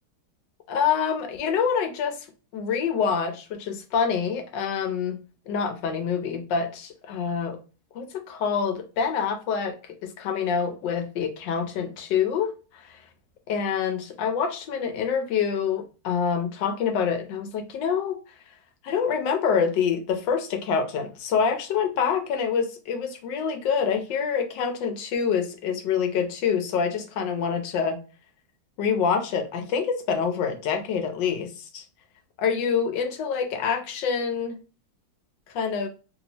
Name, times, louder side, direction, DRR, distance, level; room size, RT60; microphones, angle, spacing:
voice 1, 0.7-2.2 2.5-5.2 5.5-7.6 7.9-9.7 10.0-12.9 13.5-18.2 18.8-28.0 28.8-31.8 32.4-34.6 35.5-35.9, left 6 dB, 70° left, 6 dB, 1.3 m, -26 dB
3.2 x 2.8 x 2.8 m, 0.33 s
omnidirectional pair, 2.2 m